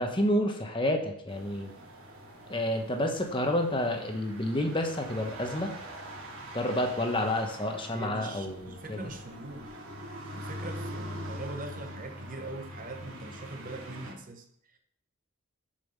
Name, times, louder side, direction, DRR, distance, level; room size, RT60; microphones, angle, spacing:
voice 1, 0.0-1.7 2.5-5.7 6.5-9.0, left 1 dB, 25° left, 3 dB, 0.9 m, -29 dB
sound 1, 1.3-14.1, equal, 80° right, 2.1 m, -43 dB
voice 2, 7.9-9.8 10.3-14.8, right 2 dB, 40° right, 5 dB, 0.8 m, -42 dB
7.0 x 5.5 x 5.4 m, 0.71 s
head